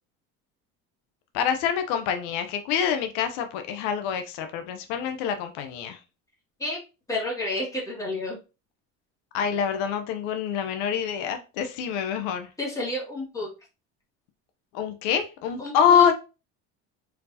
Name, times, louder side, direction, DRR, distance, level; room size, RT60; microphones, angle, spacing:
voice 1, 1.3-6.0 9.3-12.5 14.7-16.1, left 8 dB, 85° left, 0.8 m, -25 dB
voice 2, 7.1-8.4 12.6-13.5 15.6-16.0, left 2 dB, 10° left, 2.1 m, -30 dB
4.3 x 4.0 x 2.7 m
cardioid pair, 160°, 31 cm